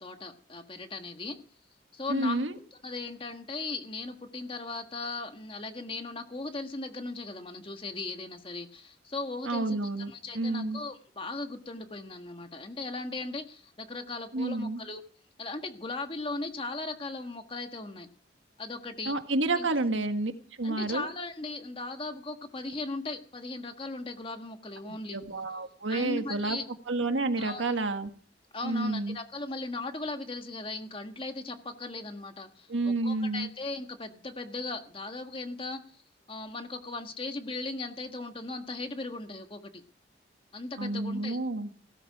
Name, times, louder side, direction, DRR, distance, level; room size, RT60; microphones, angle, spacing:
voice 1, 0.0-1.4 1.9-2.4 2.7-9.8 10.1-15.0 15.4-18.1 18.6-19.2 19.5-19.7 20.6-25.2 25.9-26.7 27.4-27.7 28.5-35.8 36.3-39.8 40.5-41.4, left 3 dB, 30° left, 6 dB, 1.5 m, -38 dB
voice 2, 2.1-2.6 9.4-10.8 14.3-14.8 19.0-20.3 20.6-21.1 24.8-26.6 26.9-28.1 28.6-29.2 32.7-33.5 40.8-41.7, right 2 dB, 90° right, 7 dB, 1.7 m, -30 dB
16.5 x 13.5 x 4.8 m, 0.43 s
head